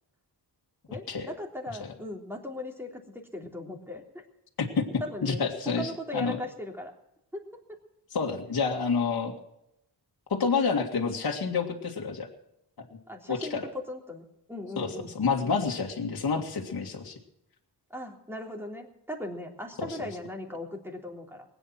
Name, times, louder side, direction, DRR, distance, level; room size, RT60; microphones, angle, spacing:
voice 1, 0.9-4.2 5.0-6.9 7.3-7.8 13.1-15.1 17.9-21.4, left 1 dB, 5° right, 1 dB, 3.4 m, -38 dB
voice 2, 5.2-6.4 8.1-9.4 10.3-12.3 12.8-12.9 13.3-13.6 14.8-14.9 15.1-17.2 19.8-19.9, left 5 dB, 60° left, 0 dB, 2.2 m, -28 dB
20.5 x 9.2 x 6.1 m, 0.81 s
cardioid pair, 85°, 41 cm